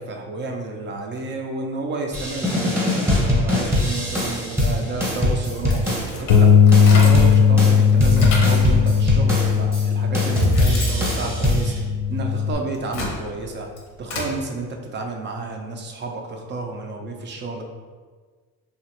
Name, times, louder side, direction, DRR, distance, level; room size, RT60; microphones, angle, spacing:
voice 1, 0.0-6.5 6.9-11.7 12.1-13.7 14.0-17.7, right 3 dB, 35° right, 2 dB, 0.5 m, -31 dB
sound 1, 2.1-6.4 6.7-9.8 10.1-11.8, left 1 dB, 5° right, 0.9 m, -22 dB
sound 2, 5.6-7.4 7.8-8.7 9.5-9.6 10.1-12.2 12.7-14.3, left 2 dB, 85° left, 0.8 m, -31 dB
Bass guitar, 6.3-12.5, left 7 dB, 65° left, 0.5 m, -17 dB
3.0 x 2.4 x 2.9 m, 1.5 s
supercardioid pair, 100°, 34 cm